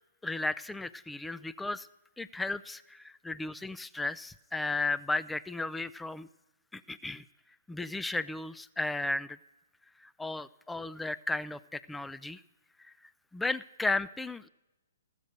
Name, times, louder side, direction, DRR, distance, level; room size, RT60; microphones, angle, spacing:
voice 1, 0.2-1.9 2.2-6.3 6.7-7.2 7.7-9.4 10.2-12.4 13.3-14.5, left 2 dB, 5° left, 16 dB, 0.3 m, -34 dB
15.0 x 6.7 x 6.5 m, 1.0 s
figure-of-eight pair, 130°, 0 cm